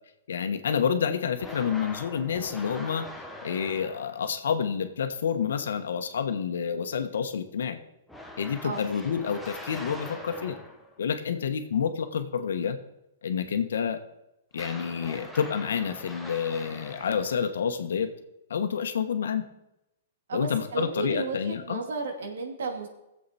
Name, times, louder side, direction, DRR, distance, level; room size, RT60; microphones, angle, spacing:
voice 1, 0.3-3.1 3.4-7.8 8.4-10.6 11.0-12.8 13.2-14.0 14.5-18.1 18.5-19.4 20.3-21.8, left 7 dB, 85° left, 7 dB, 1.3 m, -28 dB
sound 1, 1.4-4.3 8.1-11.0 14.5-17.6, left 1 dB, ahead, 0.7 m, -43 dB
voice 2, 20.3-22.9, right 4 dB, 85° right, 3 dB, 2.4 m, -33 dB
18.0 x 7.7 x 4.3 m, 0.88 s
hypercardioid pair, 175°, 0 cm